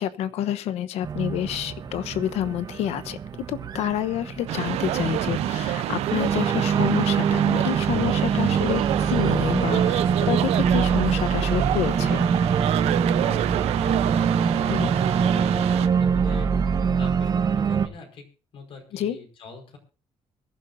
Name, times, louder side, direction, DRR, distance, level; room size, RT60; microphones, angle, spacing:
voice 1, 0.0-3.2 3.5-12.3 14.7-14.9 18.9-19.2, left 11 dB, 85° left, 12 dB, 1.0 m, -28 dB
Organ, 1.0-17.9, right 6 dB, 40° right, 1.1 m, -24 dB
sound 1, 4.5-15.9, right 13 dB, 90° right, 0.7 m, -28 dB
voice 2, 8.3-8.6 13.2-18.3 18.5-19.8, left 4 dB, 60° left, 3 dB, 5.0 m, -44 dB
23.5 x 11.0 x 2.7 m, 0.35 s
cardioid pair, 135°, 10 cm